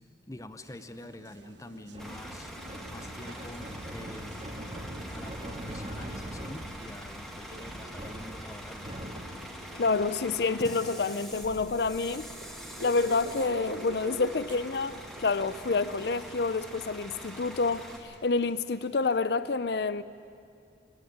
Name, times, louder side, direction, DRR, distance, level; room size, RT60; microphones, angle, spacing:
voice 1, 0.3-2.5 2.9-4.3 5.1-8.9, left 1 dB, 20° left, 0.8 m, -46 dB
sound 1, 0.6-19.2, right 2 dB, 75° right, 1.3 m, -49 dB
sound 2, 1.9-9.6, right 1 dB, 35° right, 1.7 m, -42 dB
Bus / Idling, 2.0-18.0, equal, ahead, 2.0 m, -44 dB
voice 2, 9.7-12.3 12.8-20.0, left 4 dB, 60° left, 0.6 m, -28 dB
21.0 x 17.5 x 9.6 m
head